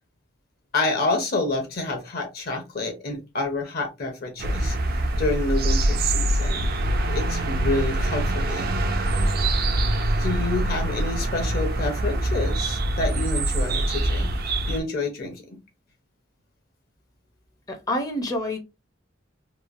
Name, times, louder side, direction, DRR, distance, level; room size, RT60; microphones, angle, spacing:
voice 1, 0.7-4.7 5.2-6.7 7.1-8.9 10.2-14.3 14.7-15.4, left 2 dB, 55° left, 0.8 m, -28 dB
sound 1, 4.4-14.8, right 1 dB, 55° right, 0.4 m, -24 dB
voice 2, 17.7-18.6, left 1 dB, 20° left, 0.5 m, -27 dB
3.0 x 2.3 x 2.4 m
head